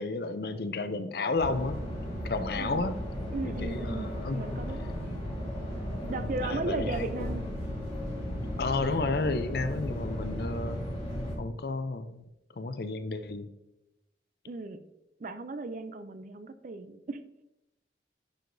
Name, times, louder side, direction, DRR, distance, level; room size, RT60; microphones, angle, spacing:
voice 1, 0.0-1.9 2.2-2.9 3.4-4.6 6.1-7.4 8.6-10.8 11.4-12.2 12.6-13.5, left 3 dB, 55° left, 10 dB, 0.5 m, -32 dB
sound 1, 1.4-11.4, equal, 25° left, 2.7 m, -35 dB
voice 2, 2.6-2.9 3.3-4.8 6.1-7.5 14.5-14.8 15.2-17.2, right 3 dB, 45° right, 11 dB, 0.4 m, -36 dB
10.5 x 4.8 x 2.6 m, 0.92 s
head